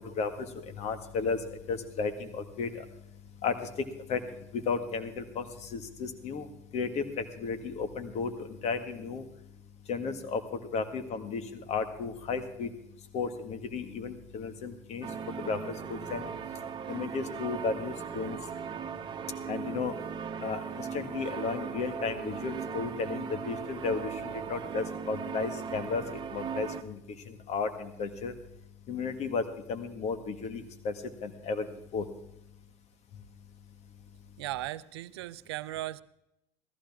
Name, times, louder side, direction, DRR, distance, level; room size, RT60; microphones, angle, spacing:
voice 1, 0.8-1.4 1.7-2.3 2.6-2.7 3.4-3.5 4.1-4.2 4.7-5.5 5.7-6.5 6.7-7.0 7.4-8.3 8.6-9.2 9.9-10.4 10.7-11.4 11.7-12.7 13.1-15.1 15.4-15.6 15.9-16.2 16.9-18.4 19.5-19.9 20.4-20.6 20.9-24.1 24.5-26.0 26.3-27.0 27.5-28.3 28.9-29.4 29.7-30.9 31.2-31.7 31.9-32.0, left 5 dB, 55° left, 9 dB, 1.9 m, -33 dB
sound 1, 15.0-26.8, right 7 dB, 35° right, 1.2 m, -38 dB
voice 2, 34.4-36.0, right 15 dB, 90° right, 17 dB, 0.5 m, -37 dB
16.0 x 14.5 x 3.7 m, 0.83 s
hypercardioid pair, 80°, 13 cm